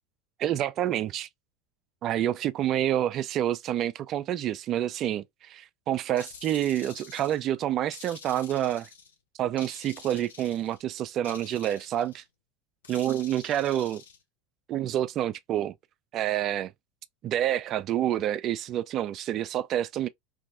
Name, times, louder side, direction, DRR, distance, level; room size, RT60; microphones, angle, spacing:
voice 1, 0.4-1.3 2.0-8.9 9.4-12.2 12.9-14.0 14.7-15.7 16.1-16.7 17.2-20.1, right 11 dB, 45° right, 0.3 m, -28 dB
sound 1, 6.2-7.5 7.9-9.1 9.6-10.8 11.2-12.2 12.8-14.2, left 6 dB, 75° left, 0.6 m, -48 dB
2.7 x 2.6 x 2.5 m
figure-of-eight pair, 80°, 0 cm